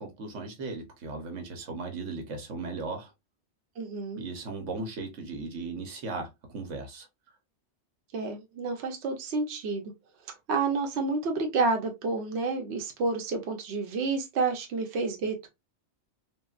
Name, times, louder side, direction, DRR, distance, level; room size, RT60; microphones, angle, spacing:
voice 1, 0.0-3.1 4.2-7.1, right 3 dB, 90° right, 1.2 m, -37 dB
voice 2, 3.8-4.2 8.1-9.9 10.5-15.5, right 3 dB, 70° right, 0.9 m, -29 dB
3.6 x 2.2 x 2.3 m
omnidirectional pair, 1.2 m